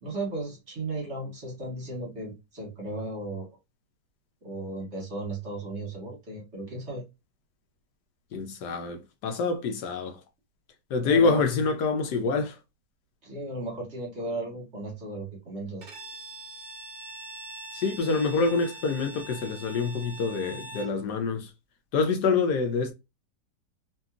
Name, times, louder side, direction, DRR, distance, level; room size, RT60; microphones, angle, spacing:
voice 1, 0.0-3.5 4.4-7.0 11.0-11.4 13.2-15.9, right 2 dB, 45° right, 1.1 m, -35 dB
voice 2, 8.3-10.2 10.9-12.6 17.7-21.5 21.9-22.9, left 4 dB, 75° left, 1.2 m, -26 dB
Bowed string instrument, 15.8-21.0, right 2 dB, 65° right, 0.4 m, -43 dB
2.8 x 2.7 x 2.3 m
omnidirectional pair, 1.9 m